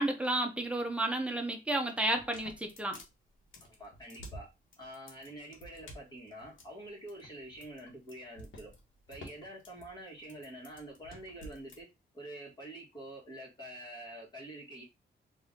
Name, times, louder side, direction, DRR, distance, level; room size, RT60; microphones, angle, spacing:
voice 1, 0.0-3.0, right 1 dB, 5° right, 0.8 m, -32 dB
sound 1, 2.0-11.8, equal, 85° left, 1.6 m, -51 dB
voice 2, 3.6-4.5 4.8-8.7 9.1-11.9 12.1-14.8, right 1 dB, 20° left, 1.6 m, -47 dB
4.9 x 2.7 x 3.7 m
wide cardioid pair, 175°, 20 cm